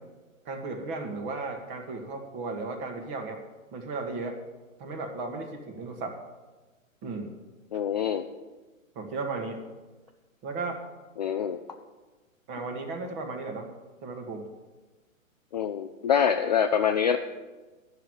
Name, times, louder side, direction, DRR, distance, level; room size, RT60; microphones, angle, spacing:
voice 1, 0.4-3.4 3.7-4.4 4.8-6.2 7.0-7.3 7.7-7.8 8.9-9.7 10.4-10.8 12.5-13.7 14.0-14.5, right 3 dB, 25° right, 4 dB, 1.6 m, -35 dB
voice 2, 7.7-8.2 11.2-11.6 15.5-17.2, left 8 dB, 35° left, 6 dB, 0.4 m, -25 dB
11.0 x 6.4 x 8.9 m, 1.2 s
hypercardioid pair, 140°, 41 cm